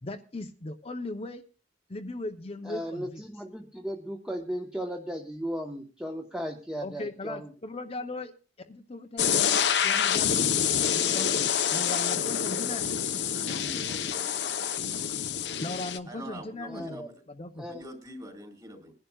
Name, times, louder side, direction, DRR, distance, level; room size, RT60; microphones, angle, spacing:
voice 1, 0.0-1.4 1.9-3.2 6.8-8.3 8.7-12.9 15.6-17.7, left 2 dB, 35° left, 6 dB, 0.8 m, -38 dB
voice 2, 2.6-7.5 16.7-17.1 17.6-17.8, equal, 5° right, 2 dB, 1.1 m, -36 dB
sound 1, 9.2-16.0, left 8 dB, 80° left, 0.9 m, -27 dB
voice 3, 13.5-15.1 16.1-17.1 17.6-18.9, equal, 25° right, 1 dB, 4.0 m, -45 dB
22.5 x 11.5 x 2.4 m, 0.34 s
head